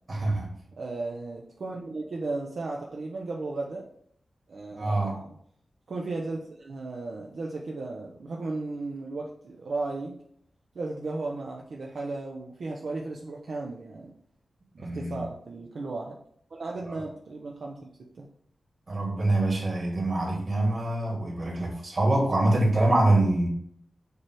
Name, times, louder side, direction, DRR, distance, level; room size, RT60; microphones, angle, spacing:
voice 1, 0.1-0.5 4.7-5.2 14.8-15.3 16.8-17.0 18.9-23.5, right 2 dB, 40° right, -2 dB, 2.4 m, -25 dB
voice 2, 0.8-3.9 4.5-5.3 5.9-10.2 10.7-14.1 14.8-16.2 16.5-17.9 18.1-18.3, right 3 dB, 60° right, -1 dB, 0.8 m, -35 dB
7.1 x 3.3 x 6.2 m, 0.68 s
wide cardioid pair, 155°, 0 cm